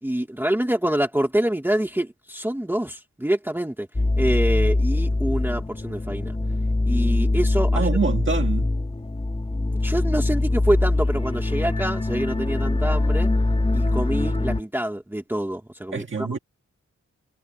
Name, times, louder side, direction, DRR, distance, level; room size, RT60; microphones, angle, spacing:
voice 1, 0.0-3.9 4.2-6.3 6.9-7.9 9.7-13.3 13.7-16.4, right 1 dB, 5° right, 1.5 m, -26 dB
sound 1, 3.9-14.6, left 2 dB, 20° left, 2.5 m, -23 dB
voice 2, 7.8-8.7 15.9-16.4, right 5 dB, 40° right, 1.8 m, -25 dB
wide cardioid pair, 175°, 29 cm